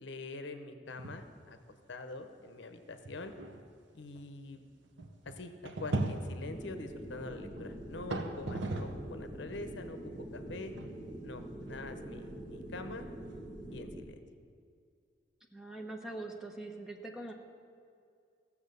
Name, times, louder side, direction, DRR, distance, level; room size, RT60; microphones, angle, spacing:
voice 1, 0.0-1.6 1.9-3.3 3.9-4.6 5.2-10.7 11.2-13.0 13.7-14.2, left 3 dB, 65° left, 8 dB, 0.8 m, -45 dB
sound 1, 0.9-1.4 1.7-1.8 2.5-2.6 3.0-9.1 9.5-13.8, right 2 dB, 75° right, 1.0 m, -40 dB
sound 2, 6.5-14.1, right 1 dB, 25° right, 1.8 m, -45 dB
voice 2, 15.5-17.3, right 2 dB, 5° right, 2 dB, 1.0 m, -43 dB
15.0 x 7.1 x 6.7 m, 2.4 s
head